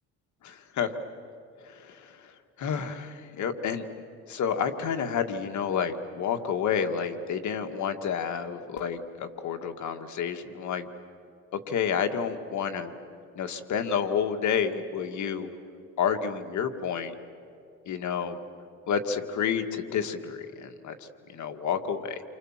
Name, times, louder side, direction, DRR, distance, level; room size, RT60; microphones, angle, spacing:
voice 1, 0.4-0.9 1.7-2.1 2.6-3.9 4.3-10.9 11.7-12.9 13.4-15.6 16.0-17.1 17.9-18.4 18.9-21.0 21.3-22.2, left 7 dB, 70° left, 7 dB, 1.9 m, -30 dB
29.0 x 25.5 x 7.5 m, 2.6 s
cardioid pair, 90°, 30 cm